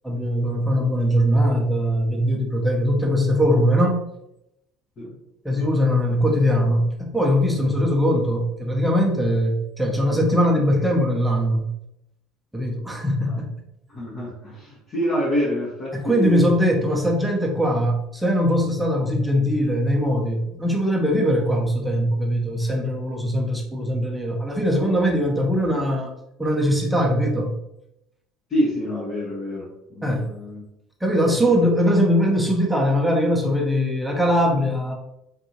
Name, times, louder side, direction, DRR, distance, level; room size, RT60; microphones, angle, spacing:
voice 1, 0.0-4.0 5.4-11.7 12.5-13.5 15.9-26.1 26.4-27.6 30.0-30.3 31.0-34.9, equal, 5° right, -1 dB, 0.8 m, -21 dB
voice 2, 13.9-16.5 28.5-30.6 31.1-31.6, equal, 35° left, -6 dB, 0.9 m, -27 dB
3.7 x 2.6 x 2.9 m, 0.84 s
figure-of-eight pair, 60°, 0 cm